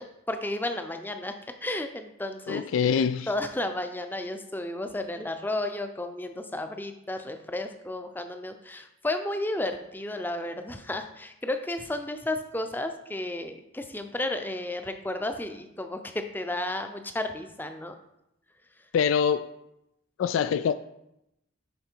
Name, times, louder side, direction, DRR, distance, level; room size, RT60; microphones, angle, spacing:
voice 1, 0.0-1.3 1.6-2.6 2.9-17.9, left 1 dB, 10° left, 7 dB, 0.5 m, -33 dB
voice 2, 2.5-3.3 18.9-19.5 20.2-20.7, left 7 dB, 85° left, 12 dB, 0.3 m, -24 dB
10.5 x 4.3 x 4.5 m, 0.85 s
head